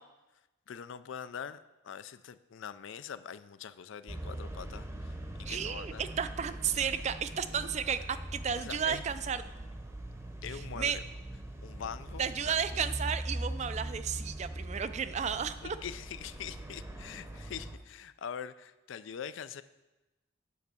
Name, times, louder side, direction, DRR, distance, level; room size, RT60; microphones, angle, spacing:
voice 1, 0.7-1.6 1.8-5.1 5.4-6.0 8.6-9.1 10.4-11.0 11.6-12.8 15.6-19.6, left 7 dB, 65° left, 14 dB, 0.4 m, -43 dB
sound 1, 4.1-17.8, right 1 dB, 15° right, 0.7 m, -41 dB
voice 2, 5.5-9.4 10.5-11.0 12.2-15.8, right 7 dB, 35° right, 12 dB, 0.3 m, -33 dB
8.6 x 5.2 x 6.8 m, 1.0 s
head